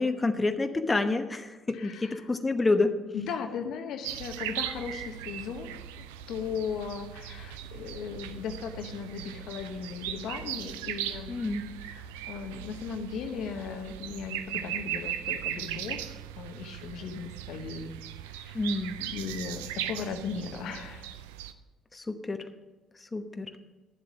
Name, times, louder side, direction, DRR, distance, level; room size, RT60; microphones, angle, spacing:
voice 1, 0.0-2.9 11.3-11.6 18.5-18.9 21.9-22.4 23.1-23.5, left 3 dB, 25° left, 7 dB, 1.0 m, -28 dB
voice 2, 1.7-2.3 3.1-11.4 11.8-16.0 16.4-17.9 18.3-18.6 19.0-21.1, left 6 dB, 65° left, 6 dB, 1.0 m, -37 dB
sound 1, 4.0-21.5, right 11 dB, 85° right, 0.5 m, -38 dB
11.0 x 7.6 x 6.1 m, 1.2 s
hypercardioid pair, 50°, 0 cm